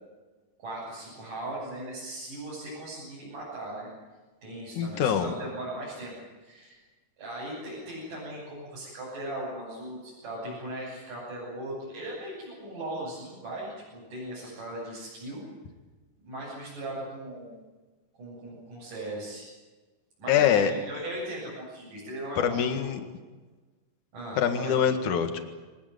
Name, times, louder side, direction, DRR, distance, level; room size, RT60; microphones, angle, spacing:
voice 1, 0.6-3.9 4.4-6.1 6.4-6.8 7.2-15.4 16.2-17.6 18.2-19.5 20.2-22.9 24.1-24.8, right 1 dB, 65° right, -7 dB, 9.2 m, -38 dB
voice 2, 4.8-5.3 20.3-20.7 22.4-23.0 24.4-25.4, left 8 dB, 65° left, 7 dB, 3.2 m, -24 dB
25.5 x 19.0 x 9.3 m, 1.3 s
omnidirectional pair, 3.9 m